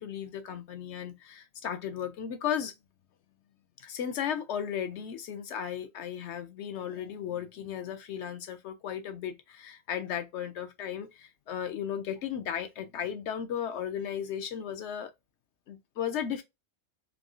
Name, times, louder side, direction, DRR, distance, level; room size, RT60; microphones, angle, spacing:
voice 1, 0.0-2.7 3.8-15.1 15.7-16.4, left 9 dB, 65° left, 0.7 m, -35 dB
3.6 x 2.3 x 2.3 m
omnidirectional pair, 1.5 m